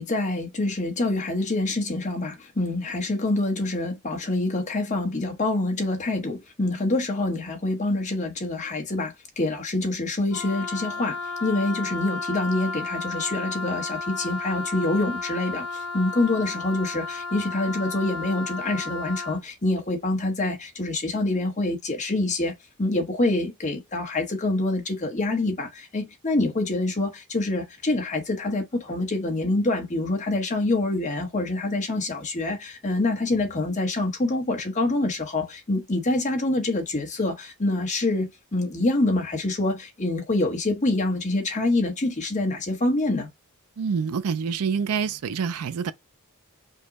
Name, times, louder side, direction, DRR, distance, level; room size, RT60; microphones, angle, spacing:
voice 1, 0.0-22.5 22.8-43.3, left 2 dB, 35° left, 1.1 m, -26 dB
Wind instrument woodwind instrument, 10.3-19.4, left 3 dB, 90° left, 0.5 m, -33 dB
voice 2, 43.8-45.9, right 6 dB, 75° right, 0.4 m, -26 dB
5.2 x 2.2 x 4.0 m
head